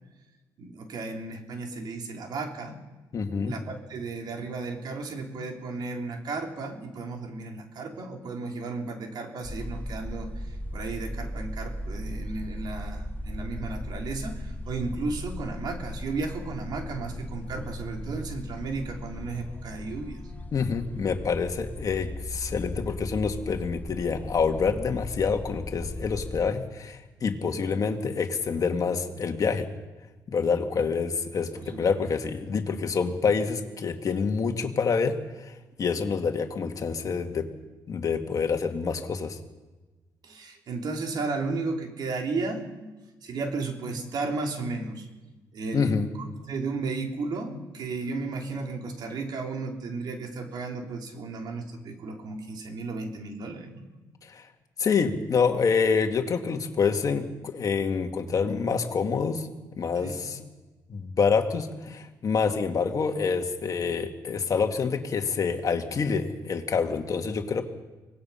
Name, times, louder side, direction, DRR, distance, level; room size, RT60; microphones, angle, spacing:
voice 1, 0.6-2.8 3.4-20.3 31.6-32.1 40.2-45.1 45.5-53.9 60.0-60.2, right 3 dB, 60° right, 2 dB, 3.7 m, -34 dB
voice 2, 3.1-3.5 20.5-29.7 30.3-35.5 35.8-37.5 37.9-39.4 45.7-46.1 54.2-54.4 54.8-59.5 59.8-60.4 60.9-67.6, left 5 dB, 45° left, 5 dB, 2.2 m, -27 dB
sound 1, 9.4-26.5, left 1 dB, 20° left, 1.0 m, -37 dB
25.0 x 19.0 x 5.8 m, 1.2 s
cardioid pair, 90°, 8 cm